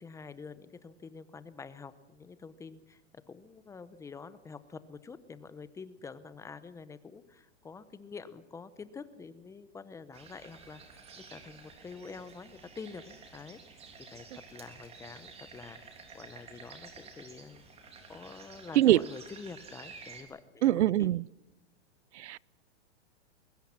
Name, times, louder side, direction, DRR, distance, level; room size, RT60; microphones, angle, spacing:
voice 1, 0.0-3.0 3.3-13.8 14.1-15.8 16.1-17.7 18.1-21.1, left 5 dB, 10° left, 14 dB, 0.8 m, -47 dB
sound 1, 10.1-20.2, right 4 dB, 15° right, 3.3 m, -51 dB
voice 2, 20.6-21.2 22.1-22.4, right 14 dB, 75° right, 26 dB, 0.6 m, -23 dB
22.5 x 20.5 x 5.9 m, 1.1 s
hypercardioid pair, 150°, 34 cm